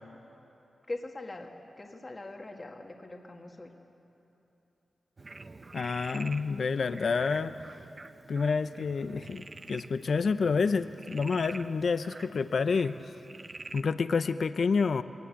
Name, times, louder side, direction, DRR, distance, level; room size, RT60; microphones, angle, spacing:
voice 1, 0.9-3.7, left 2 dB, 35° left, 2 dB, 1.9 m, -41 dB
Frog, 5.2-13.8, right 3 dB, 40° right, 0.7 m, -47 dB
voice 2, 5.7-7.5 8.3-13.0 13.7-15.0, left 5 dB, 65° left, 12 dB, 0.6 m, -28 dB
21.0 x 18.5 x 8.5 m, 3.0 s
cardioid pair, 75°, 0 cm